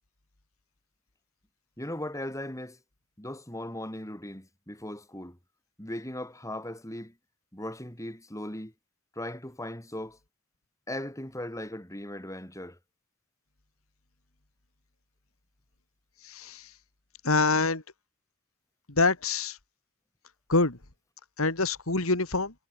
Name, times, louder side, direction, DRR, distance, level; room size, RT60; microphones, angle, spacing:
voice 1, 1.8-2.8 3.2-5.4 5.8-7.1 7.5-8.7 9.2-10.2 10.9-12.8, left 1 dB, 15° left, 5.7 m, -38 dB
voice 2, 16.2-16.7 17.2-17.8 19.0-19.6 20.5-20.8 21.4-22.5, left 3 dB, 75° left, 2.8 m, -25 dB
head